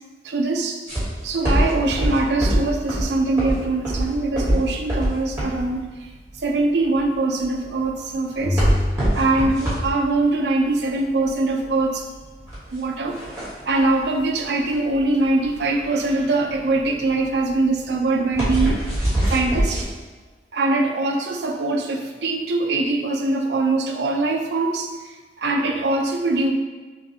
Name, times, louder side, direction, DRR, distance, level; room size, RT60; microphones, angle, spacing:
voice 1, 0.2-0.8 1.2-5.9 6.4-8.6 9.1-12.0 12.7-13.2 13.6-18.8 19.3-19.9 20.5-24.9 25.4-26.5, right 2 dB, 70° right, 2 dB, 0.5 m, -22 dB
sound 1, 0.9-19.8, right 1 dB, 15° right, 1.4 m, -24 dB
sound 2, 8.4-10.2, left 1 dB, 55° left, 0.9 m, -27 dB
5.8 x 2.3 x 2.8 m, 1.3 s
head